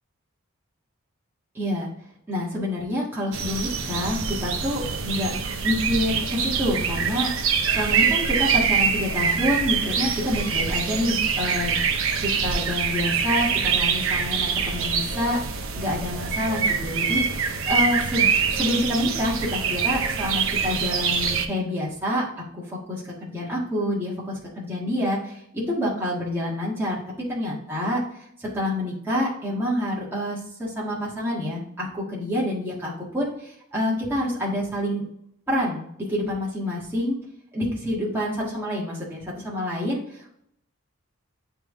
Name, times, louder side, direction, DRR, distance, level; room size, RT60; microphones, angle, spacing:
voice 1, 1.5-1.9 2.3-5.3 5.6-7.3 7.7-11.8 12.2-27.0 27.3-28.0 28.4-35.0 35.5-37.2 37.5-40.3, left 1 dB, 10° right, -7 dB, 1.6 m, -27 dB
sound 1, 3.3-21.5, right 6 dB, 65° right, 0.7 m, -25 dB
8.9 x 3.4 x 3.6 m, 0.71 s
head